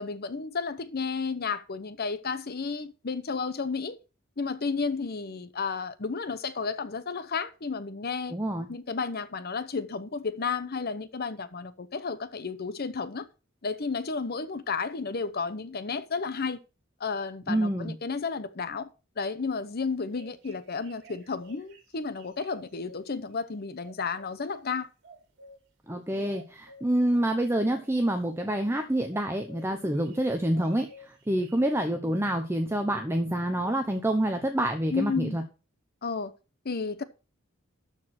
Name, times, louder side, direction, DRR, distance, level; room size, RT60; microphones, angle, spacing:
voice 1, 0.0-4.0 4.4-8.4 8.7-13.3 13.6-16.6 17.0-18.9 19.2-24.9 34.9-35.4 36.0-36.3 36.6-37.0, left 4 dB, 50° left, 0.8 m, -32 dB
voice 2, 8.3-8.7 17.5-18.0 25.9-35.4, right 1 dB, 10° right, 0.9 m, -27 dB
sound 1, 19.9-23.1 23.8-24.5 25.0-25.6 26.3-26.9 27.7-28.3 29.1-29.6 29.9-31.7, equal, 60° right, 2.8 m, -52 dB
12.5 x 4.7 x 5.8 m
head